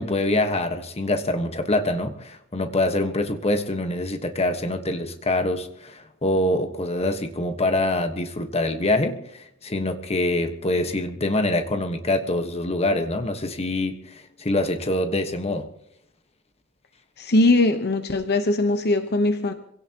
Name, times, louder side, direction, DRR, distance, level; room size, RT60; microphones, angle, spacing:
voice 1, 0.0-15.7, left 1 dB, 30° left, 6 dB, 1.3 m, -25 dB
voice 2, 17.2-19.5, left 2 dB, 50° left, 7 dB, 1.0 m, -20 dB
26.0 x 17.0 x 3.0 m, 0.72 s
head